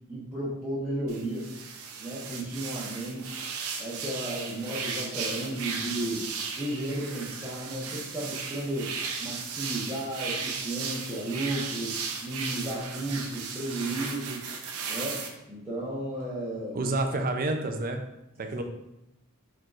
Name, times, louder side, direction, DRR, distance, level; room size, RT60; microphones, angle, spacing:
voice 1, 0.1-1.5 2.0-3.4 3.8-6.2 6.5-8.9 9.2-14.4 14.9-16.8, right 1 dB, 10° right, -11 dB, 1.0 m, -34 dB
sound 1, 1.1-15.3, right 5 dB, 80° right, 0.7 m, -36 dB
voice 2, 16.7-18.0 18.4-18.6, right 2 dB, 40° right, 5 dB, 0.5 m, -29 dB
4.6 x 4.5 x 2.5 m, 0.90 s
head